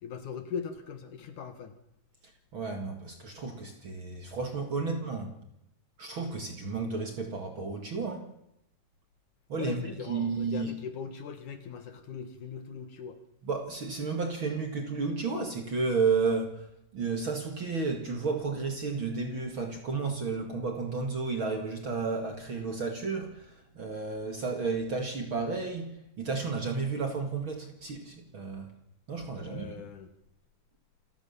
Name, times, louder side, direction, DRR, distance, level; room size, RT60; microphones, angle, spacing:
voice 1, 0.0-1.7 4.8-5.0 9.6-13.2 29.4-30.1, left 6 dB, 60° left, 2.8 m, -40 dB
voice 2, 2.5-5.3 6.0-8.3 9.5-10.7 13.4-28.7 29.1-29.8, right 4 dB, 40° right, 2.3 m, -32 dB
28.0 x 14.5 x 7.2 m
omnidirectional pair, 4.3 m